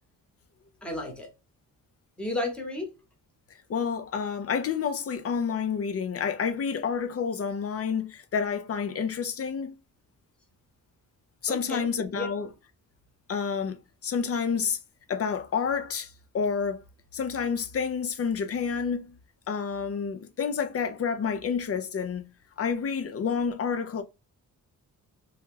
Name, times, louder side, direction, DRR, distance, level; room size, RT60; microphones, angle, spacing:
voice 1, 0.8-1.3 2.2-2.9 11.5-12.3, left 2 dB, 5° left, 1.0 m, -33 dB
voice 2, 3.7-9.7 11.4-12.5 13.3-14.8 15.1-16.8 17.1-19.2 19.5-22.2 22.6-24.0, left 6 dB, 40° left, 0.5 m, -29 dB
2.9 x 2.2 x 3.6 m
cardioid pair, 115°, 36 cm